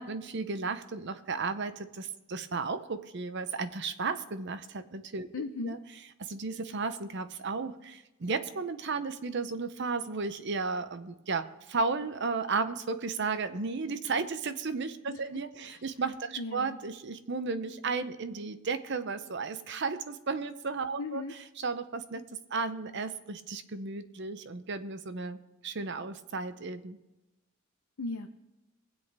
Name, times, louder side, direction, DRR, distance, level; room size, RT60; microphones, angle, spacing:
voice 1, 0.0-5.3 5.6-5.8 6.2-21.2 21.6-22.2 22.5-27.0, right 4 dB, 55° right, 11 dB, 0.7 m, -34 dB
voice 2, 5.3-5.8 15.1-15.2 15.6-15.8 16.4-16.8 21.0-21.3 28.0-28.3, left 3 dB, 85° left, 4 dB, 0.7 m, -37 dB
21.5 x 8.1 x 3.5 m, 0.98 s
head